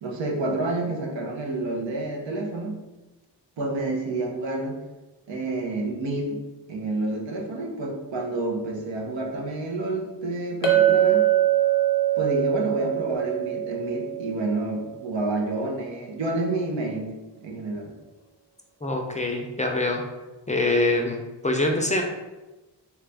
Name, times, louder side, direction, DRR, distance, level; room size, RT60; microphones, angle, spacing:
voice 1, 0.0-2.8 3.6-4.8 5.3-6.4 6.7-11.3 12.2-17.1 17.4-17.9, right 2 dB, 85° right, 0 dB, 0.7 m, -29 dB
Chink clink, 10.6-15.1, right 12 dB, 85° left, 0.7 m, -23 dB
voice 2, 18.8-20.0 20.5-22.0, left 2 dB, 20° left, 2 dB, 0.4 m, -24 dB
2.9 x 2.3 x 3.3 m, 1.1 s
cardioid pair, 55°, 43 cm